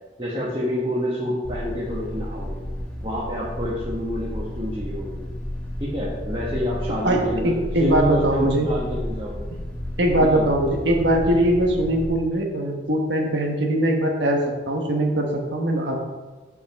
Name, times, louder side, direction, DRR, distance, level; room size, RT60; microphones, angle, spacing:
voice 1, 0.2-2.6 3.0-5.2 5.8-9.5 10.2-10.4, equal, 25° right, -6 dB, 1.3 m, -28 dB
sound 1, 1.4-12.1, left 1 dB, 5° left, 1.1 m, -32 dB
voice 2, 7.0-8.7 10.0-16.0, right 1 dB, 85° right, 1 dB, 1.3 m, -21 dB
8.3 x 5.5 x 4.6 m, 1.2 s
head